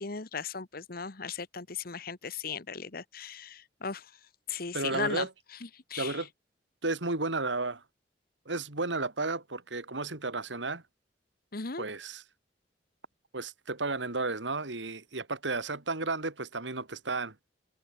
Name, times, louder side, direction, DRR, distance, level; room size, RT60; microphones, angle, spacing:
voice 1, 0.0-4.0 4.5-5.3 5.9-6.2 11.5-11.8, left 5 dB, 55° left, 1.4 m, -36 dB
voice 2, 4.7-5.3 6.0-6.3 6.8-7.8 8.5-10.8 11.8-12.2 13.3-17.3, right 3 dB, 85° right, 2.9 m, -33 dB
head